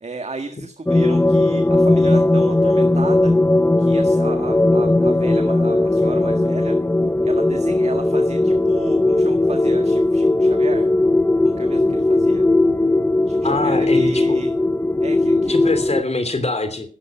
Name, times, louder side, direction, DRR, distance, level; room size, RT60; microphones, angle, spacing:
voice 1, 0.0-3.4 3.8-6.8 7.2-10.9 11.4-12.5 13.3-14.6 15.0-15.5, right 3 dB, 50° right, 6 dB, 1.8 m, -33 dB
sound 1, 0.9-16.0, left 2 dB, 15° left, 0.7 m, -17 dB
voice 2, 13.4-14.2 15.5-16.9, left 2 dB, 50° left, 9 dB, 3.0 m, -23 dB
15.5 x 12.5 x 5.8 m, 0.41 s
wide cardioid pair, 65°, 14 cm